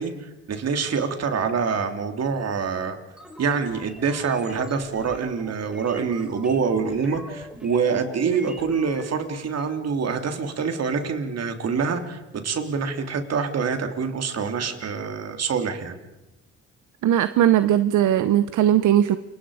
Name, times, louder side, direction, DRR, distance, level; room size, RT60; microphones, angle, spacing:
voice 1, 0.0-3.0 3.4-16.0, right 5 dB, 55° right, 6 dB, 3.1 m, -26 dB
sound 1, 3.2-9.1, equal, 5° right, 4.0 m, -43 dB
voice 2, 17.0-19.2, right 11 dB, 75° right, 13 dB, 0.9 m, -19 dB
29.0 x 25.0 x 5.0 m, 0.97 s
cardioid pair, 90°, 30 cm